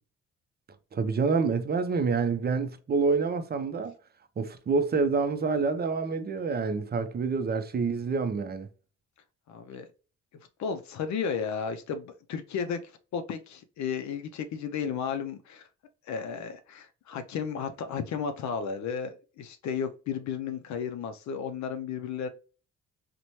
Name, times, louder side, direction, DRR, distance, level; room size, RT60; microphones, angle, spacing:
voice 1, 0.9-3.9 4.4-8.7, right 4 dB, 30° right, 0.5 m, -27 dB
voice 2, 9.5-9.9 10.6-15.7 16.1-22.3, left 6 dB, 65° left, 0.5 m, -33 dB
3.0 x 2.1 x 2.6 m
cardioid pair, 75°, 30 cm